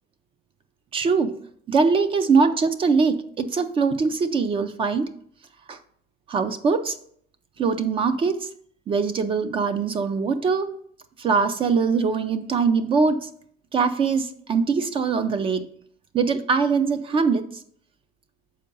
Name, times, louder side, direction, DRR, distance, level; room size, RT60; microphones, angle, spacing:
voice 1, 0.9-1.4 1.7-5.1 5.7-5.8 6.3-7.0 7.6-8.5 8.9-10.7 11.2-13.3 13.7-15.7 16.1-17.6, right 5 dB, 30° right, 10 dB, 0.4 m, -22 dB
6.5 x 4.5 x 5.3 m, 0.64 s
cardioid pair, 160°, 19 cm